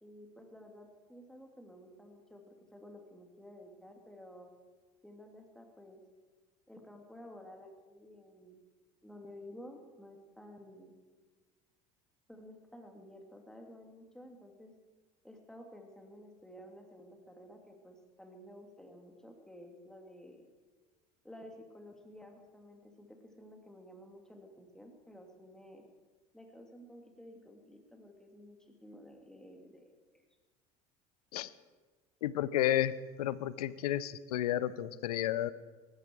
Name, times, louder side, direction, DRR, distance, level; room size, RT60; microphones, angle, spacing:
voice 1, 0.0-4.5 5.0-6.0 6.7-8.6 9.0-10.9 12.3-14.7 15.2-20.5 21.2-25.8 26.3-30.2, equal, 5° left, 3 dB, 3.1 m, -53 dB
voice 2, 32.2-32.9 33.2-35.5, left 12 dB, 80° left, 18 dB, 0.6 m, -31 dB
18.5 x 14.0 x 4.9 m, 1.3 s
hypercardioid pair, 70°, 20 cm